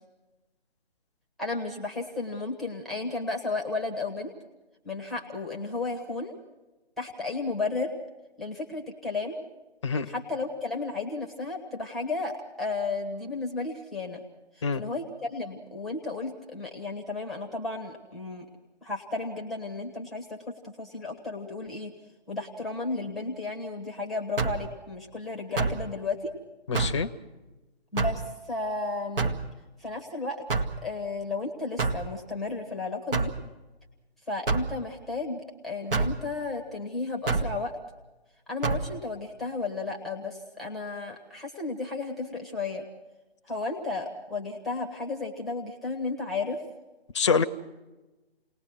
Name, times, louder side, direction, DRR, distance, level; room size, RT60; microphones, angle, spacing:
voice 1, 1.4-4.3 4.8-6.3 7.0-7.9 8.4-9.4 10.1-14.2 14.8-18.5 18.8-21.9 22.3-26.3 27.9-28.2 28.5-29.3 29.8-30.4 30.8-33.3 34.3-37.8 38.5-42.8 43.5-46.6, left 3 dB, ahead, 2 dB, 1.1 m, -33 dB
sound 1, 24.4-24.7 25.6-25.8 26.7-27.0 28.0-28.2 29.2-29.5 30.5-30.8 31.8-32.1 33.1-33.4 34.5-34.7 35.9-36.2 37.3-37.5 38.6-38.9, right 4 dB, 60° right, 2.0 m, -27 dB
voice 2, 26.7-27.1 47.1-47.4, left 5 dB, 30° left, 9 dB, 0.9 m, -25 dB
29.5 x 19.5 x 6.2 m, 1.1 s
figure-of-eight pair, 150°, 32 cm